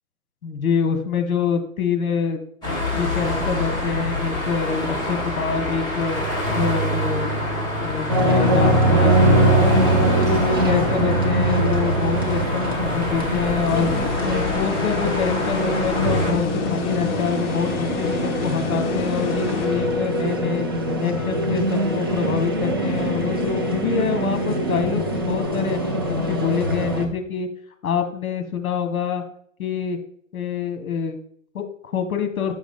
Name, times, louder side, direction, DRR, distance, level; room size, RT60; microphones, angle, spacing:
voice 1, 0.4-2.4 3.0-6.2 6.5-7.3 7.8-13.9 14.2-20.7 21.0-27.5 27.8-29.2 29.6-30.0 30.3-31.2 31.5-32.6, left 6 dB, 75° left, 7 dB, 1.3 m, -26 dB
sound 1, 2.6-16.3, left 1 dB, 10° left, 2.0 m, -26 dB
sound 2, 8.1-27.1, right 1 dB, 20° right, 0.3 m, -22 dB
sound 3, 13.7-20.3, left 8 dB, 55° left, 0.8 m, -30 dB
8.1 x 6.2 x 3.6 m, 0.65 s
hypercardioid pair, 150°, 43 cm